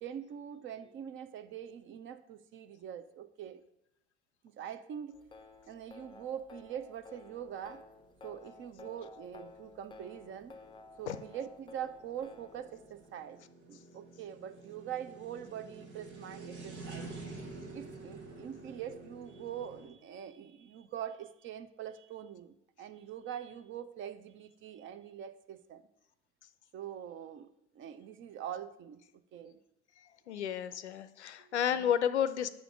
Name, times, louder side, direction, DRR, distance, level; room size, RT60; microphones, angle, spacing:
voice 1, 0.0-3.6 4.4-5.2 5.7-7.8 8.2-10.6 11.0-13.4 13.7-17.1 17.7-25.8 26.7-29.0 29.3-29.6 31.4-31.9, right 9 dB, 35° right, 12 dB, 0.6 m, -43 dB
sound 1, 5.1-13.1, left 3 dB, 15° left, 0.5 m, -54 dB
sound 2, 7.4-19.9, right 3 dB, 75° right, 1.4 m, -49 dB
voice 2, 30.3-32.5, left 9 dB, 80° left, 13 dB, 0.5 m, -31 dB
8.1 x 5.0 x 4.7 m, 0.79 s
figure-of-eight pair, 60°, 34 cm